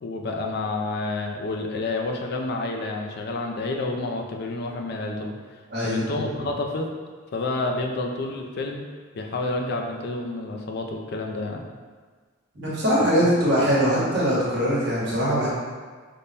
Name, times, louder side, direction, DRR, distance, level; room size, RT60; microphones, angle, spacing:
voice 1, 0.0-5.3 5.8-6.9 7.3-8.8 9.1-11.6 13.2-13.3, left 2 dB, 50° left, 2 dB, 0.4 m, -29 dB
voice 2, 5.7-6.2 12.5-15.5, equal, 55° right, -7 dB, 1.1 m, -22 dB
3.4 x 2.1 x 4.0 m, 1.5 s
head